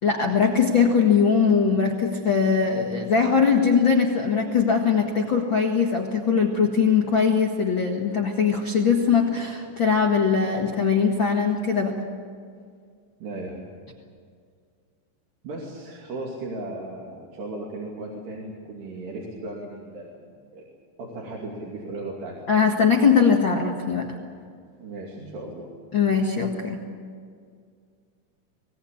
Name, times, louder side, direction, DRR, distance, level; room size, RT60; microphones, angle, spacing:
voice 1, 0.0-12.0 22.5-24.1 25.9-26.8, left 6 dB, 85° left, 0 dB, 1.0 m, -21 dB
voice 2, 13.2-13.6 15.4-20.2 20.5-20.6 21.0-22.3 24.8-25.7, right 2 dB, 65° right, -3 dB, 4.6 m, -36 dB
26.0 x 18.5 x 8.7 m, 2.1 s
omnidirectional pair, 5.4 m